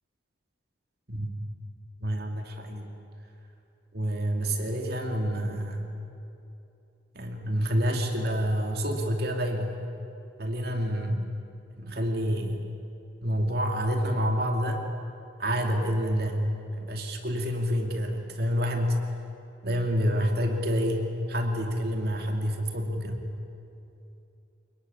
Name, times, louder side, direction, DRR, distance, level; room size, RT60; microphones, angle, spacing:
voice 1, 2.0-2.9 3.9-5.8 7.1-9.8 10.4-11.3 11.8-12.6 13.2-14.8 15.4-16.5 16.8-19.0 19.6-23.3, equal, 50° right, 3 dB, 2.5 m, -28 dB
25.0 x 22.0 x 9.7 m, 2.9 s
head